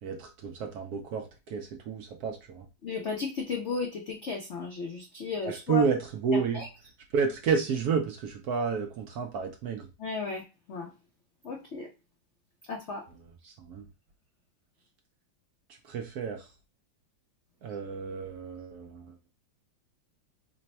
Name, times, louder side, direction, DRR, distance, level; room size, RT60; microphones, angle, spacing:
voice 1, 0.0-2.7 5.4-6.7 7.1-9.9 13.1-13.8 15.8-16.5 17.6-19.1, right 5 dB, 70° right, 3 dB, 0.9 m, -31 dB
voice 2, 2.8-5.8 6.3-6.7 10.0-10.4 10.7-10.9 11.4-11.9 12.7-13.0, left 4 dB, 80° left, 1 dB, 0.6 m, -34 dB
3.3 x 2.2 x 4.1 m, 0.30 s
omnidirectional pair, 2.0 m